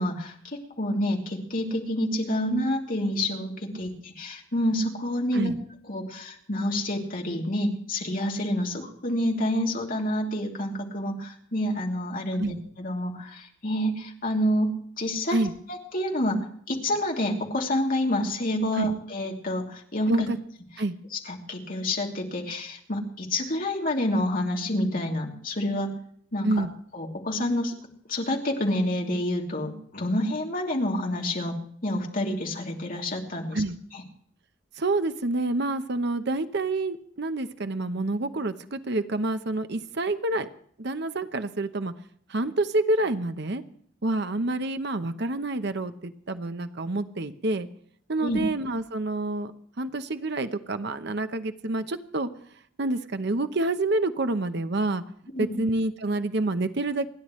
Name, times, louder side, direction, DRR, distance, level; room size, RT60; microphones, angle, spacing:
voice 1, 0.0-5.5 5.9-14.7 15.0-15.4 15.7-20.3 21.1-25.9 26.3-26.6 26.9-27.7 28.1-33.6 33.9-34.0 48.2-48.4 55.3-55.6, left 1 dB, 45° left, 0 dB, 2.9 m, -28 dB
voice 2, 20.1-20.4 20.8-20.9 26.4-26.7 33.5-33.8 34.8-40.5 40.8-41.9 42.3-43.6 44.0-47.7 48.1-49.5 49.8-52.3 52.8-55.0 55.4-57.1, right 2 dB, 55° right, 10 dB, 0.9 m, -27 dB
29.5 x 10.5 x 3.2 m, 0.62 s
head